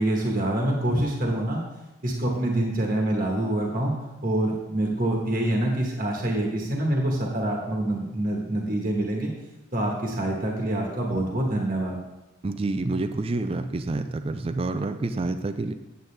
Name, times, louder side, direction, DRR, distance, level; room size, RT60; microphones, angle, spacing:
voice 1, 0.0-1.6 2.0-3.9 4.2-9.3 9.7-12.0, right 1 dB, 45° right, 0 dB, 1.3 m, -26 dB
voice 2, 12.4-15.7, right 2 dB, 30° right, 9 dB, 0.4 m, -28 dB
8.8 x 7.9 x 3.3 m, 1.0 s
head